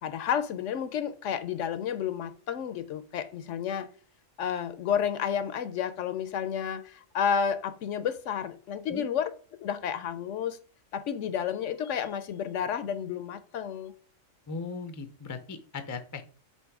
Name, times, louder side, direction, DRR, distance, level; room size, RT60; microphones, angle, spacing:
voice 1, 0.0-3.9 4.4-9.3 9.6-10.6 10.9-13.9, left 8 dB, 70° left, 0.9 m, -31 dB
voice 2, 14.5-16.2, left 4 dB, 25° left, 0.4 m, -38 dB
8.1 x 2.9 x 4.7 m
omnidirectional pair, 1.4 m